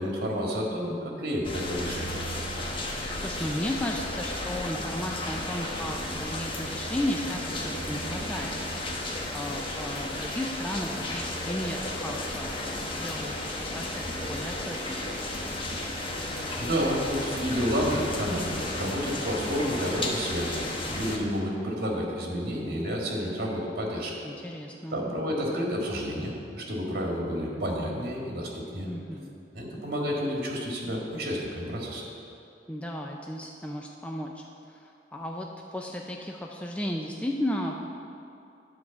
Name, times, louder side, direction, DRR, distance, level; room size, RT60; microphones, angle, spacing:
voice 1, 0.0-2.2 16.6-20.6 20.9-24.2 24.9-28.9 29.5-32.0, equal, 60° right, -1 dB, 1.9 m, -30 dB
sound 1, 1.4-21.2, left 1 dB, 30° left, 1.0 m, -33 dB
voice 2, 3.2-9.0 9.3-15.2 24.2-25.0 28.8-29.3 32.7-37.8, left 1 dB, 5° left, 0 dB, 0.4 m, -34 dB
9.9 x 4.8 x 7.1 m, 2.7 s
head